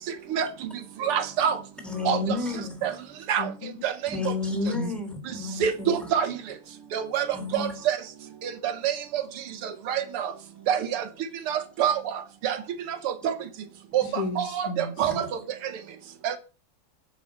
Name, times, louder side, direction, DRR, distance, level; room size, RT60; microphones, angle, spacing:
voice 1, 1.0-1.5 2.1-2.2 2.8-2.9 3.3-3.4 3.8-3.9 5.6-6.3 6.9-7.3 7.5-8.0 8.6-8.9 9.9-10.3 10.7-11.0 11.5-12.0 12.4-12.6 13.2-13.3 13.9-14.0 14.4-14.5 14.8-15.3 16.2-16.3, right 9 dB, 80° right, 2.1 m, -25 dB
voice 2, 1.8-2.8 4.1-6.1 7.3-7.8 14.0-14.1 15.0-15.3, left 3 dB, ahead, 2.9 m, -31 dB
voice 3, 3.4-3.8 4.7-4.9 14.1-14.9, left 2 dB, 90° left, 3.0 m, -33 dB
9.7 x 6.0 x 8.6 m
omnidirectional pair, 2.4 m